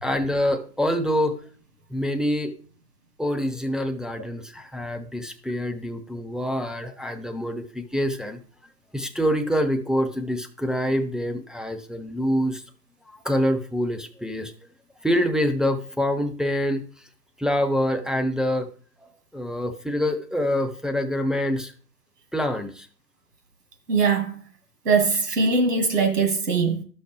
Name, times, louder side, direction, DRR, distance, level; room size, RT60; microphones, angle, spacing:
voice 1, 0.0-1.4 1.9-2.5 3.2-8.4 8.9-12.6 13.1-14.5 15.0-16.8 17.4-18.7 19.3-21.7 22.3-22.9, equal, ahead, 0.3 m, -25 dB
voice 2, 23.9-24.4 24.8-26.8, right 4 dB, 70° right, 2.0 m, -21 dB
11.5 x 6.3 x 3.2 m
hypercardioid pair, 170°, 49 cm